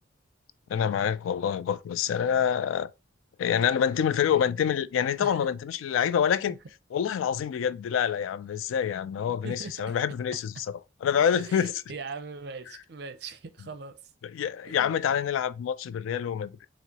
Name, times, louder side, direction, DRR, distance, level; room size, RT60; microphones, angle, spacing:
voice 1, 0.7-2.9 3.4-6.6 6.9-11.7 14.3-16.7, left 8 dB, 90° left, 0.3 m, -27 dB
voice 2, 5.2-5.5 6.5-6.6 9.4-10.0 11.4-14.0 14.6-14.9, right 4 dB, 55° right, 0.5 m, -40 dB
4.5 x 3.0 x 2.8 m
head